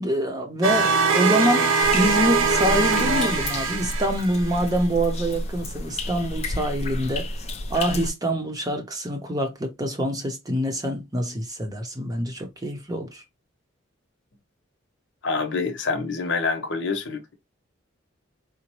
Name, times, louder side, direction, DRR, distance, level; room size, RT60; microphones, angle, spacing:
voice 1, 0.0-7.3 7.7-13.2, equal, 20° right, 0.7 m, -25 dB
sound 1, 0.6-4.6, right 4 dB, 90° right, 0.5 m, -22 dB
sound 2, 1.8-8.1, left 1 dB, 35° left, 0.4 m, -31 dB
voice 2, 15.2-17.3, left 4 dB, 70° left, 0.9 m, -26 dB
4.0 x 2.1 x 2.9 m
head